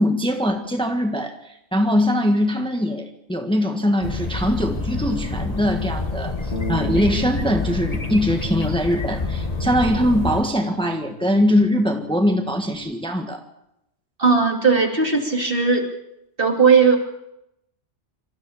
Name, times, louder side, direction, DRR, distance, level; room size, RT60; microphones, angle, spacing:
voice 1, 0.0-13.4, equal, 5° left, 4 dB, 1.6 m, -22 dB
sound 1, 4.0-10.4, left 3 dB, 35° left, 1.4 m, -27 dB
Bass guitar, 6.5-12.8, left 3 dB, 60° left, 2.7 m, -36 dB
voice 2, 14.2-15.9 16.4-17.0, right 5 dB, 50° right, 2 dB, 2.7 m, -17 dB
26.5 x 13.5 x 7.1 m, 0.83 s
omnidirectional pair, 1.2 m